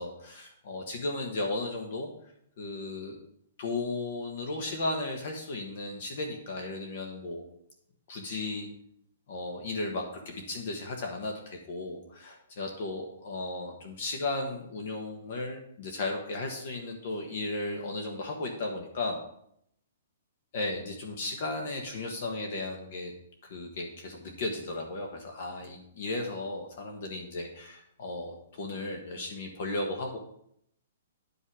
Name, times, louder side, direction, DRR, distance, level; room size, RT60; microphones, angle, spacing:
voice 1, 0.0-2.1 2.6-3.2 3.6-7.4 8.1-8.7 9.3-19.2 20.5-23.1 23.4-30.2, left 2 dB, 45° left, 2 dB, 1.2 m, -35 dB
10.0 x 5.4 x 4.8 m, 0.71 s
hypercardioid pair, 175°, 0 cm